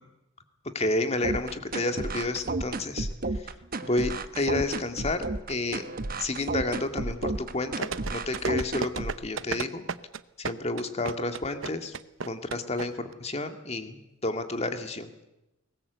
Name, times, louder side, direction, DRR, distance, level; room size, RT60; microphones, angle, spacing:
voice 1, 0.7-3.1 3.8-5.8 6.2-9.8 10.4-11.9 12.3-15.3, left 2 dB, 30° left, 7 dB, 2.0 m, -30 dB
sound 1, 1.2-9.2, right 2 dB, 45° right, 1.0 m, -32 dB
sound 2, 7.8-12.9 13.1-13.2, right 5 dB, 70° right, 0.8 m, -32 dB
22.5 x 19.5 x 8.1 m, 0.93 s
head